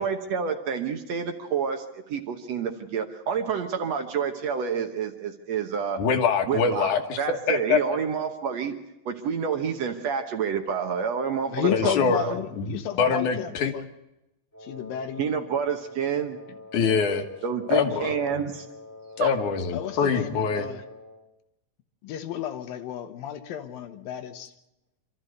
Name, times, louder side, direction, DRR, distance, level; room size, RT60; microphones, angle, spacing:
voice 1, 0.0-6.0 6.5-6.9 7.2-8.7 9.1-12.4 15.2-16.6 17.4-18.7 19.2-19.3, right 7 dB, 60° right, 6 dB, 1.9 m, -28 dB
voice 2, 6.0-7.8 11.7-12.2 12.6-13.7 16.7-17.2 17.7-18.3 19.2-20.7, left 6 dB, 65° left, 7 dB, 2.7 m, -24 dB
voice 3, 11.5-13.8 14.6-15.3 19.7-20.8 22.0-24.5, left 10 dB, 85° left, 8 dB, 3.0 m, -32 dB
Wind instrument woodwind instrument, 14.5-21.3, left 2 dB, 20° left, 0.4 m, -46 dB
26.5 x 13.5 x 7.9 m, 0.93 s
omnidirectional pair, 3.9 m